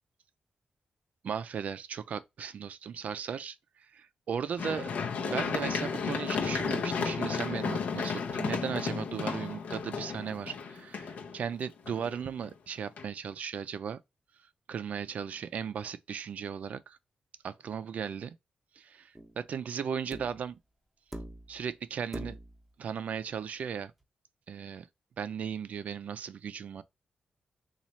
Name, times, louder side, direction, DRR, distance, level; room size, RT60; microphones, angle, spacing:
voice 1, 1.2-3.6 3.9-4.9 5.2-14.0 14.7-17.0 17.4-18.4 18.8-20.6 21.5-22.4 22.8-23.9 24.5-24.9 25.2-26.8, right 7 dB, 70° right, 0.4 m, -36 dB
Run, 4.6-12.5 13.0-13.1, left 5 dB, 80° left, 0.6 m, -33 dB
sound 1, 19.1-19.4 20.1-20.5 21.1-21.6 22.1-22.6 24.0-24.1, right 1 dB, 5° right, 0.8 m, -42 dB
3.1 x 2.4 x 4.1 m
cardioid pair, 90°, 3 cm